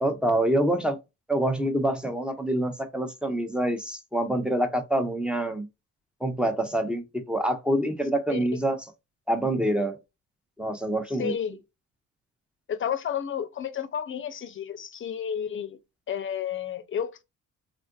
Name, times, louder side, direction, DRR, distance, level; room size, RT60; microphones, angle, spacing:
voice 1, 0.0-1.0 1.3-5.7 6.2-8.8 9.3-10.0 10.6-11.3, right 1 dB, 5° right, 0.7 m, -26 dB
voice 2, 8.3-8.6 11.2-11.6 12.7-15.8 16.1-17.2, left 8 dB, 40° left, 0.6 m, -31 dB
3.5 x 2.5 x 2.4 m
cardioid pair, 90°, 30 cm